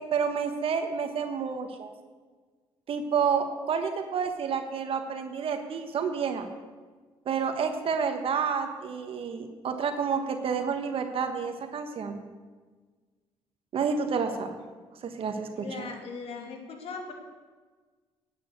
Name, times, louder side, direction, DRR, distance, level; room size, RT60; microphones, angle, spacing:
voice 1, 0.0-1.9 2.9-6.5 7.3-12.2 13.7-14.6 15.0-15.9, right 6 dB, 60° right, 6 dB, 1.3 m, -29 dB
voice 2, 15.6-17.1, left 4 dB, 65° left, 3 dB, 2.6 m, -39 dB
11.0 x 8.7 x 8.2 m, 1.4 s
supercardioid pair, 70°, 11 cm